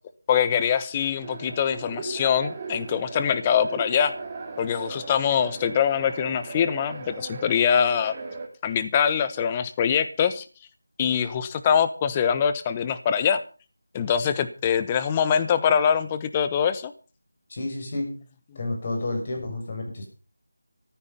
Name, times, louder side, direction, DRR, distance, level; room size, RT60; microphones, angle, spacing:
voice 1, 0.3-4.1 4.6-8.1 8.6-10.4 11.0-13.4 13.9-16.9, left 8 dB, 20° left, 12 dB, 1.1 m, -23 dB
sound 1, 1.2-8.5, right 3 dB, 20° right, 3.0 m, -37 dB
voice 2, 17.5-18.2 18.6-20.1, left 2 dB, 35° left, 3 dB, 6.9 m, -30 dB
14.5 x 12.5 x 5.7 m, 0.36 s
figure-of-eight pair, 170°, 0 cm